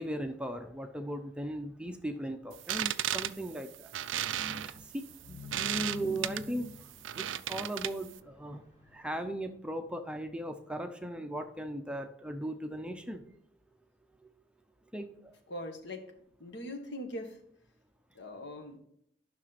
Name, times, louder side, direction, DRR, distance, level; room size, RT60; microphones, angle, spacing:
voice 1, 0.0-3.9 4.6-6.7 7.2-8.6 8.9-13.3 14.9-15.3, right 1 dB, 5° right, 6 dB, 0.6 m, -38 dB
sound 1, 2.5-8.2, right 12 dB, 75° right, 0.4 m, -35 dB
sound 2, 4.3-9.2, left 2 dB, 35° left, 2.8 m, -47 dB
voice 2, 15.5-16.0 16.4-17.4 18.1-18.8, left 1 dB, 65° left, 5 dB, 1.6 m, -41 dB
10.5 x 6.0 x 4.1 m, 0.70 s
head